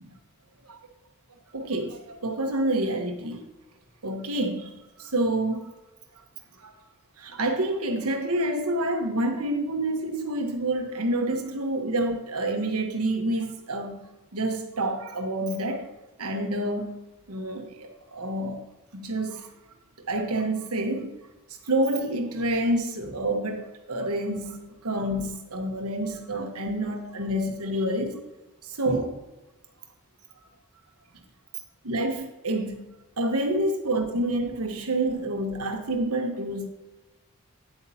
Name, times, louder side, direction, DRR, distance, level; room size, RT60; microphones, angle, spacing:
voice 1, 1.5-3.4 4.0-4.7 5.0-5.7 6.6-6.8 7.2-14.1 14.3-15.9 16.2-17.0 17.3-18.6 18.9-19.5 20.1-21.1 21.6-28.2 28.6-29.2 31.8-32.8 33.2-36.7, right 1 dB, 85° right, 1.3 m, -28 dB
9.3 x 8.3 x 2.8 m
head